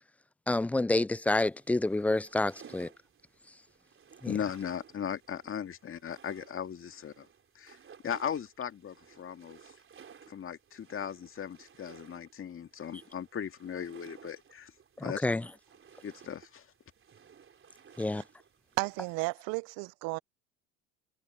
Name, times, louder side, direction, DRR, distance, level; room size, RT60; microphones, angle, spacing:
voice 1, 0.5-2.9 4.2-4.3 15.2-15.4 18.0-18.2, left 2 dB, 5° left, 0.3 m, -28 dB
sound 1, 1.2-19.2, right 7 dB, 30° right, 4.1 m, -57 dB
voice 2, 4.2-7.3 7.6-7.8 8.0-9.7 10.3-14.7 15.0-15.4 16.0-16.7, left 8 dB, 35° left, 2.0 m, -38 dB
voice 3, 18.8-20.2, right 27 dB, 60° right, 0.9 m, -33 dB
hypercardioid pair, 80°, 39 cm